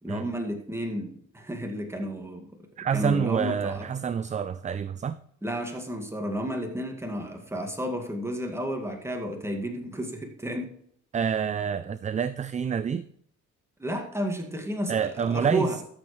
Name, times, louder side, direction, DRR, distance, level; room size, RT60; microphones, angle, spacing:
voice 1, 0.0-3.9 5.4-10.7 13.8-15.8, equal, 10° right, 2 dB, 2.0 m, -32 dB
voice 2, 2.8-5.2 11.1-13.1 14.9-15.7, right 7 dB, 25° right, 15 dB, 0.3 m, -27 dB
13.5 x 7.3 x 3.2 m, 0.66 s
cardioid pair, 90°, 30 cm